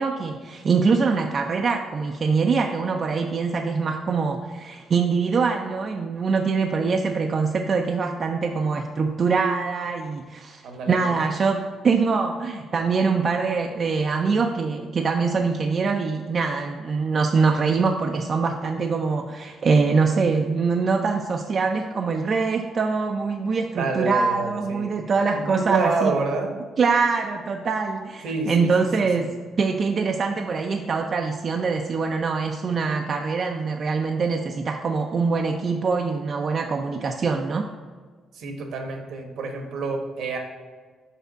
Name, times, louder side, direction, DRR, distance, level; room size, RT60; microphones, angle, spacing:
voice 1, 0.0-26.2 26.8-29.3 29.6-37.7, right 4 dB, 45° right, 3 dB, 0.4 m, -23 dB
voice 2, 10.6-11.1 23.8-24.9 25.3-26.5 28.2-28.7 29.2-29.3 38.3-40.4, right 4 dB, 75° right, 3 dB, 1.0 m, -28 dB
5.8 x 3.4 x 5.7 m, 1.5 s
cardioid pair, 90°, 0 cm